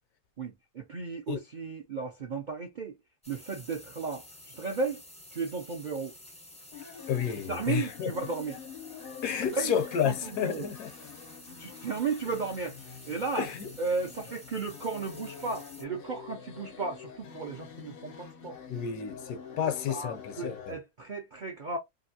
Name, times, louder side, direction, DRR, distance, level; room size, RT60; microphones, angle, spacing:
voice 1, 0.4-2.9 3.3-4.3 4.5-5.0 5.3-6.1 7.5-8.6 9.4-9.7 10.0-10.7 11.6-13.5 13.8-18.6 19.9-21.8, right 4 dB, 65° right, 0.4 m, -34 dB
Shower Water Running, 3.2-15.8, left 1 dB, 5° left, 0.5 m, -51 dB
sound 1, 6.7-20.7, left 7 dB, 60° left, 0.6 m, -46 dB
voice 2, 7.1-8.1 9.2-10.9 13.4-13.7 18.7-20.7, left 8 dB, 75° left, 1.1 m, -31 dB
2.8 x 2.5 x 2.7 m
omnidirectional pair, 1.7 m